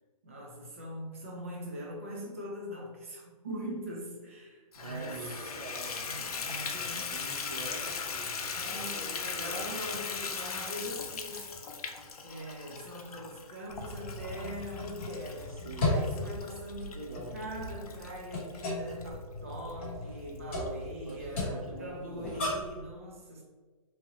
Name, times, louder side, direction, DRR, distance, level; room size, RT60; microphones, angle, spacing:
voice 1, 0.2-5.2 6.0-7.1 8.5-11.5 12.2-17.0 17.3-23.4, equal, 25° right, -1 dB, 0.5 m, -42 dB
Water tap faucet / Bathtub (filling or washing), 4.7-19.1 19.7-19.8 20.3-20.4 20.7-20.8, left 5 dB, 85° left, 0.6 m, -39 dB
voice 2, 4.8-6.0 6.7-9.9 15.5-16.0 16.9-17.4 21.1-22.6, right 2 dB, 75° right, 0 dB, 1.0 m, -45 dB
sound 1, 13.7-22.8, left 2 dB, 20° left, 0.7 m, -36 dB
3.5 x 3.0 x 2.9 m, 1.4 s
hypercardioid pair, 180°, 19 cm